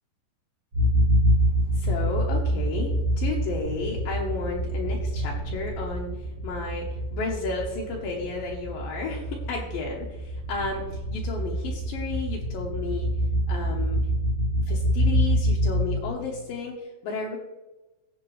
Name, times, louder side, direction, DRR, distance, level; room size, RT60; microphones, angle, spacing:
sound 1, 0.7-16.4, equal, 25° right, 3.0 m, -26 dB
voice 1, 1.7-2.9 3.2-6.1 6.4-13.1 13.5-14.0 14.7-17.4, left 4 dB, 75° left, -2 dB, 2.2 m, -32 dB
16.5 x 7.1 x 3.3 m, 1.1 s
omnidirectional pair, 5.8 m